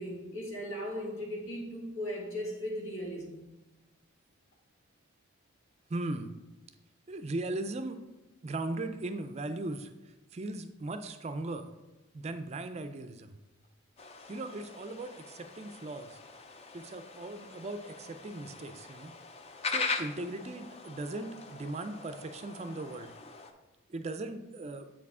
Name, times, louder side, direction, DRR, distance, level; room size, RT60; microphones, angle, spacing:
voice 1, 0.0-3.5, equal, 80° left, -2 dB, 1.9 m, -37 dB
voice 2, 5.9-6.3 7.1-8.0 8.4-9.9 10.3-11.7 12.1-13.4 14.3-16.2 16.7-19.1 19.7-23.1 23.9-24.9, right 2 dB, 30° right, 9 dB, 0.4 m, -38 dB
sound 1, 14.0-23.5, left 4 dB, 30° left, 0.4 m, -41 dB
7.4 x 4.7 x 3.6 m, 1.1 s
head